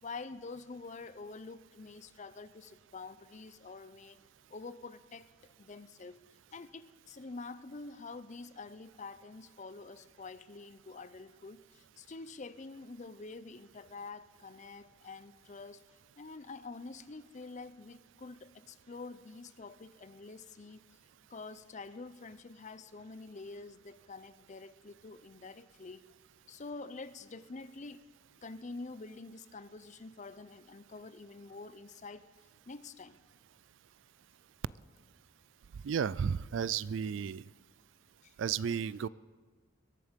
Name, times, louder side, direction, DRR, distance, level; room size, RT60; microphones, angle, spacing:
voice 1, 0.0-4.2 4.5-6.2 6.5-15.8 16.2-20.8 21.3-26.1 26.5-28.0 28.4-32.3 32.7-33.2 38.2-38.4, left 3 dB, 35° left, 14 dB, 0.6 m, -47 dB
voice 2, 35.8-37.4 38.4-39.1, right 7 dB, 65° right, 21 dB, 0.3 m, -33 dB
22.5 x 11.0 x 5.2 m, 1.4 s
head